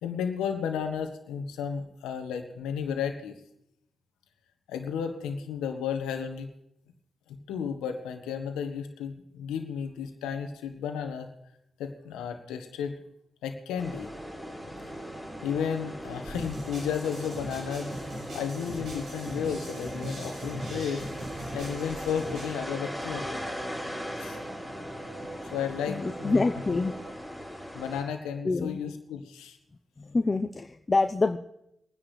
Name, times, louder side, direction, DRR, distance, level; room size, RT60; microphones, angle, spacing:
voice 1, 0.0-3.3 4.7-6.5 7.3-11.3 11.8-13.0 13.4-14.1 15.4-17.9 18.3-21.1 21.5-23.4 24.2-24.4 25.4-26.6 27.7-29.6, left 7 dB, 90° left, 6 dB, 1.3 m, -33 dB
sound 1, 13.7-27.1, right 2 dB, 50° right, 3.3 m, -45 dB
sound 2, 13.8-28.0, equal, 10° right, 5.9 m, -40 dB
sound 3, 16.3-22.5, right 1 dB, 70° right, 7.2 m, -41 dB
voice 2, 25.9-26.9 28.4-28.8 30.0-31.4, left 3 dB, 35° left, 5 dB, 0.7 m, -26 dB
24.5 x 10.0 x 3.3 m, 0.79 s
supercardioid pair, 45°, 0 cm